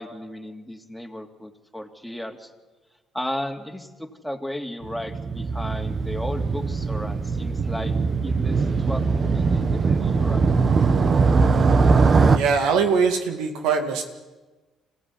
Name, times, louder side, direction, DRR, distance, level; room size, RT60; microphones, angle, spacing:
voice 1, 0.0-2.5 3.1-7.9 8.2-10.4, left 1 dB, ahead, 3 dB, 2.9 m, -34 dB
Motorcycle, 4.8-12.4, right 4 dB, 45° right, 1.3 m, -21 dB
voice 2, 12.3-14.0, right 5 dB, 85° right, 5 dB, 2.2 m, -22 dB
25.0 x 16.5 x 9.9 m, 1.2 s
supercardioid pair, 80°, 0 cm